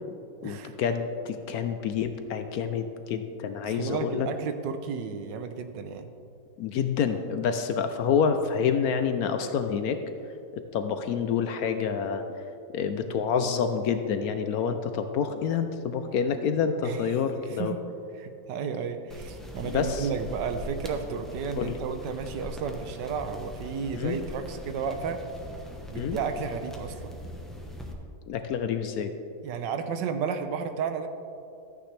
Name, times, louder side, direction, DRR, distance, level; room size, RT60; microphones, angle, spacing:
voice 1, 0.4-4.3 6.6-10.0 10.5-12.2 12.7-17.7 19.6-20.1 21.6-21.8 23.9-24.2 25.9-26.2 28.3-29.1, left 7 dB, 70° left, 8 dB, 0.9 m, -28 dB
voice 2, 3.6-6.1 16.8-17.1 17.5-17.8 18.2-25.2 25.9-27.1 29.4-31.1, right 6 dB, 85° right, 8 dB, 1.4 m, -33 dB
sound 1, 19.1-27.9, equal, ahead, 0.5 m, -41 dB
13.5 x 9.2 x 3.3 m, 2.6 s
omnidirectional pair, 1.9 m